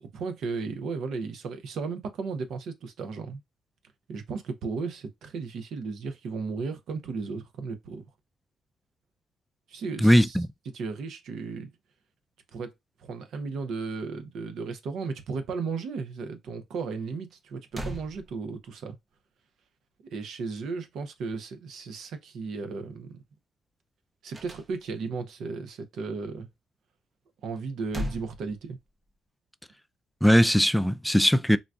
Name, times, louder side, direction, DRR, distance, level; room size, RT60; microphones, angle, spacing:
voice 1, 0.0-3.4 4.1-8.0 9.7-10.4 10.7-11.7 12.5-12.7 13.0-19.0 20.1-23.2 24.2-26.5 27.4-28.8, right 4 dB, 70° right, 0.7 m, -35 dB
voice 2, 10.0-10.5 30.2-31.6, equal, ahead, 0.3 m, -20 dB
sound 1, 17.3-17.4 17.7-18.9 24.3-25.2 27.6-29.1, equal, 25° right, 0.6 m, -38 dB
3.7 x 2.3 x 2.4 m
cardioid pair, 90°, 0 cm